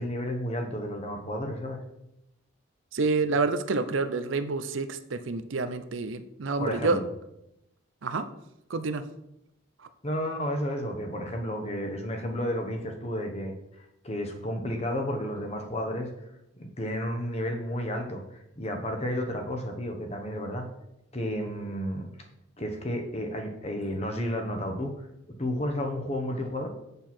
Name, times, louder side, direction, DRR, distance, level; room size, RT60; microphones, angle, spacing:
voice 1, 0.0-1.8 6.6-7.0 10.0-13.5 14.0-16.1 16.6-20.7 21.1-22.1 22.6-25.1 25.4-26.7, equal, 30° left, 4 dB, 1.1 m, -32 dB
voice 2, 2.9-7.0 8.0-8.3 8.7-9.0, right 3 dB, 70° right, 11 dB, 0.6 m, -28 dB
7.8 x 6.8 x 4.4 m, 0.83 s
head